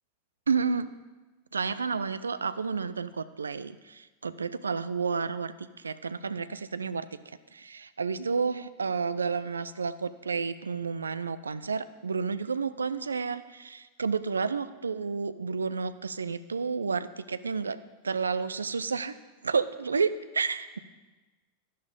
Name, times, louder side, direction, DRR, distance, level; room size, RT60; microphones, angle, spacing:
voice 1, 0.5-0.9 1.5-7.1 7.5-17.8 18.0-19.1 19.4-20.8, right 5 dB, 75° right, 14 dB, 0.5 m, -31 dB
12.5 x 11.0 x 5.2 m, 1.2 s
figure-of-eight pair, 90°, 0 cm